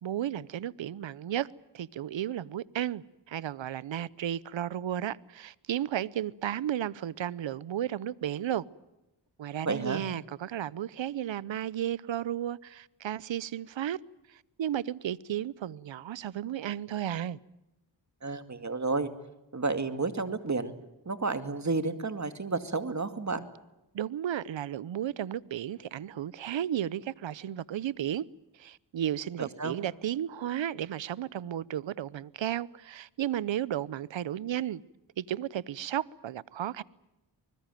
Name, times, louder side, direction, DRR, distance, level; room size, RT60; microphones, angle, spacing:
voice 1, 0.0-1.5 1.7-8.7 9.4-14.0 14.3-17.4 23.9-28.3 28.6-34.8 35.2-36.8, right 11 dB, 75° right, 0.8 m, -33 dB
voice 2, 9.6-10.0 18.2-19.1 19.5-20.7 21.1-23.5 29.4-29.8, right 3 dB, 40° right, 2.3 m, -31 dB
24.5 x 21.0 x 9.1 m
cardioid pair, 60°, 45 cm